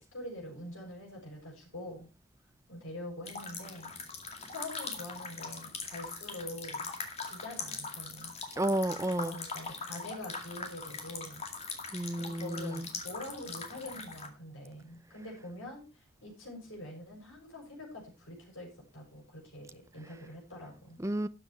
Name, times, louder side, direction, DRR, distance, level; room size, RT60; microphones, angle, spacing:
voice 1, 0.0-2.1 2.7-3.9 4.5-6.9 7.2-8.3 9.2-11.5 12.2-21.0, left 1 dB, 60° left, -1 dB, 6.7 m, -45 dB
sound 1, 3.2-14.3, left 4 dB, 30° left, 2.2 m, -41 dB
voice 2, 8.6-9.4 11.9-12.9 21.0-21.3, right 1 dB, 15° right, 13 dB, 0.6 m, -31 dB
13.0 x 7.6 x 4.6 m, 0.29 s
head